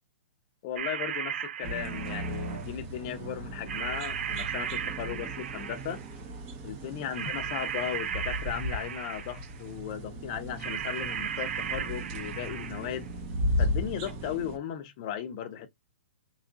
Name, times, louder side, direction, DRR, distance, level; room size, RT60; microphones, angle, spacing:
voice 1, 0.6-6.0 6.6-13.1 13.6-15.7, left 10 dB, 35° left, 0.6 m, -36 dB
sound 1, 0.8-2.7 3.7-6.1 7.1-9.6 10.6-13.0 14.1-14.2, right 8 dB, 75° right, 0.4 m, -36 dB
sound 2, 1.6-14.6, equal, 25° right, 0.7 m, -36 dB
3.0 x 2.4 x 3.8 m
hypercardioid pair, 165°, 7 cm